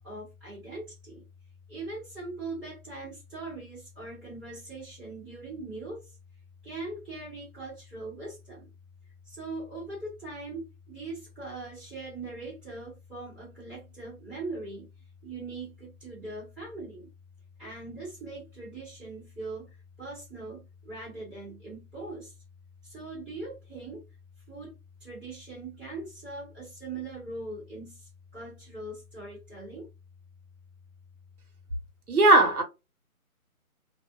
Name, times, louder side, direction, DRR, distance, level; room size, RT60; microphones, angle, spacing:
voice 1, 0.0-1.2 1.7-6.0 6.6-8.7 9.3-14.9 15.2-17.1 17.6-19.7 20.0-20.6 20.8-22.3 22.9-24.0 24.5-24.7 25.0-28.0 28.3-29.9, right 2 dB, ahead, 1.1 m, -40 dB
voice 2, 32.1-32.6, right 2 dB, 80° right, 1.1 m, -18 dB
2.5 x 2.3 x 2.4 m
figure-of-eight pair, 155°, 44 cm